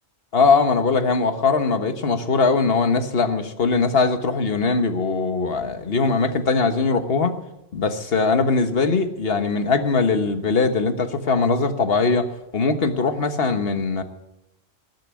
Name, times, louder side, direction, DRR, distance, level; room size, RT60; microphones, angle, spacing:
voice 1, 0.3-7.3 7.7-14.0, left 4 dB, 70° left, 8 dB, 1.5 m, -21 dB
20.0 x 7.5 x 9.5 m, 0.91 s
omnidirectional pair, 1.1 m